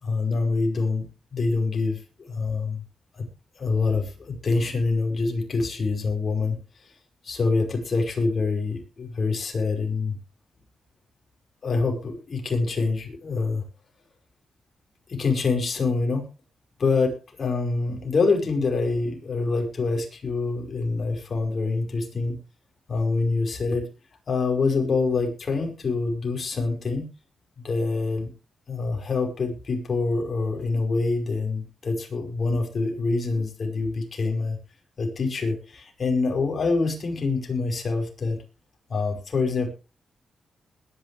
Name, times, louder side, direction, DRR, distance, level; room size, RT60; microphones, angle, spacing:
voice 1, 0.0-2.8 3.1-3.3 3.6-6.6 7.2-10.2 11.6-13.6 15.1-16.3 16.8-22.4 22.9-23.9 24.3-27.1 27.6-28.3 28.7-34.6 35.0-38.4 38.9-39.7, left 3 dB, 45° left, 3 dB, 5.4 m, -25 dB
21.0 x 10.0 x 3.4 m, 0.32 s
cardioid pair, 105°, 0 cm